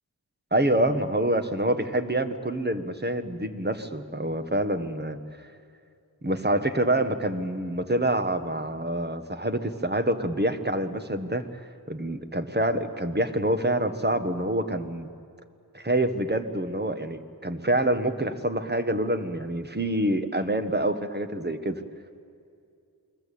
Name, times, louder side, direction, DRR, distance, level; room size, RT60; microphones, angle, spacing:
voice 1, 0.5-5.5 6.2-11.4 11.9-15.1 15.7-21.8, right 1 dB, 25° right, 8 dB, 1.6 m, -26 dB
29.0 x 20.5 x 8.6 m, 2.4 s
wide cardioid pair, 65°, 39 cm